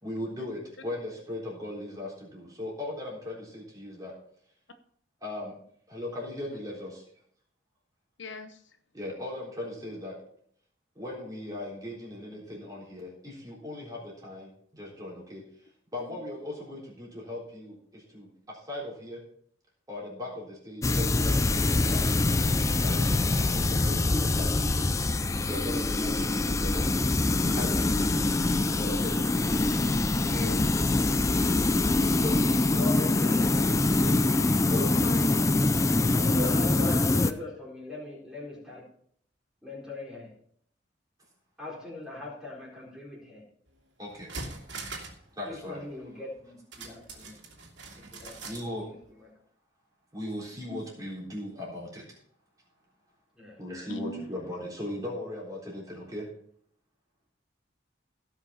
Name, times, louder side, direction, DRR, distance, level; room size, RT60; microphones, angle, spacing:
voice 1, 0.0-4.1 5.2-5.5 5.9-7.0 8.9-10.1 11.0-15.4 15.9-19.2 19.9-24.9 25.4-28.1 28.7-29.2 31.3-34.1 34.7-35.0 44.0-44.3 45.3-45.8 48.4-48.9 50.1-52.0 53.6-56.3, left 1 dB, 20° right, -4 dB, 3.7 m, -38 dB
voice 2, 8.2-8.6 30.3-30.8 35.0-35.3 50.7-50.8 53.9-54.2, left 1 dB, 70° left, 8 dB, 0.9 m, -37 dB
sound 1, 20.8-37.3, left 2 dB, 15° left, 0.4 m, -24 dB
voice 3, 36.1-38.8 39.6-40.3 41.6-43.4 45.5-47.4 48.1-49.3 53.4-53.6, left 2 dB, 5° right, -5 dB, 4.0 m, -40 dB
sound 2, 43.7-43.8 44.1-45.2 45.5-45.6 46.7-48.7 49.0-49.1, right 3 dB, 65° right, 2.5 m, -41 dB
17.0 x 5.9 x 4.2 m, 0.64 s
head